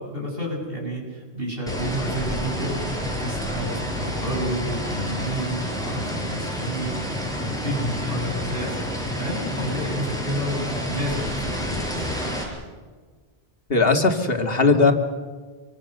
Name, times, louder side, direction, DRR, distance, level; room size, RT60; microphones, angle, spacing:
voice 1, 0.0-8.8 9.2-12.2, right 1 dB, 60° right, -1 dB, 7.6 m, -31 dB
sound 1, 1.7-12.4, equal, 5° left, 6.0 m, -29 dB
voice 2, 13.7-14.9, left 4 dB, 65° left, 5 dB, 2.4 m, -18 dB
26.5 x 23.5 x 6.7 m, 1.4 s
omnidirectional pair, 1.1 m